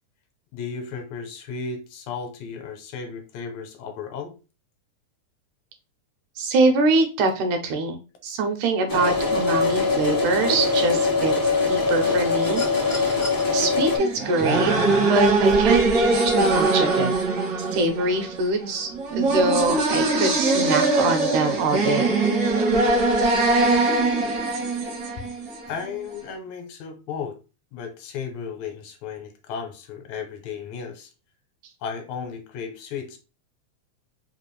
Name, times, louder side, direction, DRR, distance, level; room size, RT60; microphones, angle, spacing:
voice 1, 0.5-4.4 25.2-25.3 25.7-27.4 27.7-31.1 31.8-33.2, left 6 dB, 75° left, 2.0 m, -34 dB
voice 2, 6.4-8.0 8.2-13.2 13.5-14.7 15.1-17.1 17.6-22.1, right 3 dB, 85° right, 2.3 m, -24 dB
sound 1, 8.9-14.0, left 4 dB, 35° left, 0.6 m, -22 dB
sound 2, 12.4-13.4 14.9-15.1, left 2 dB, 60° left, 0.9 m, -37 dB
sound 3, 14.0-25.8, right 3 dB, 65° right, 1.1 m, -22 dB
5.0 x 2.5 x 3.1 m
omnidirectional pair, 3.5 m